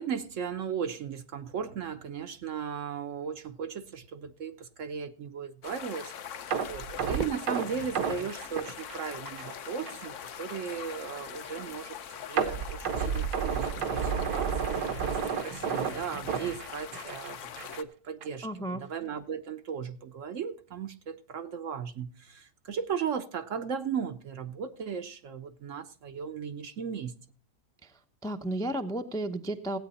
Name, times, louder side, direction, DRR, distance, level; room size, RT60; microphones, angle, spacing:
voice 1, 0.0-27.1, right 7 dB, 60° right, 1.0 m, -37 dB
sound 1, 5.6-17.8, left 8 dB, 60° left, 1.0 m, -43 dB
sound 2, 6.5-9.5 9.9-10.0 10.5-10.6 12.4-17.3 17.6-17.8 18.2-18.3, right 7 dB, 80° right, 1.6 m, -31 dB
Fireworks, 7.2-9.5, right 5 dB, 40° right, 0.7 m, -41 dB
voice 2, 18.4-18.8 27.8-27.9 28.2-29.8, right 1 dB, 5° left, 0.4 m, -33 dB
16.0 x 8.9 x 4.2 m
omnidirectional pair, 1.7 m